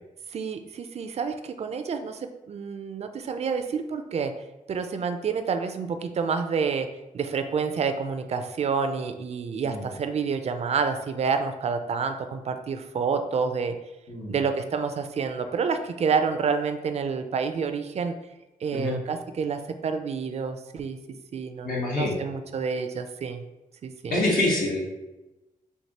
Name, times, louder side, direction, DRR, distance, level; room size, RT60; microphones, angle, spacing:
voice 1, 0.3-4.3 4.7-6.9 7.1-13.7 14.3-18.1 18.6-21.0 21.3-23.4 23.8-24.2, right 5 dB, 50° right, 8 dB, 0.4 m, -28 dB
voice 2, 14.1-14.4 18.7-19.0 21.6-22.3 24.1-25.0, left 2 dB, 85° left, -4 dB, 1.2 m, -26 dB
4.5 x 2.7 x 2.8 m, 1.0 s
cardioid pair, 65°, 14 cm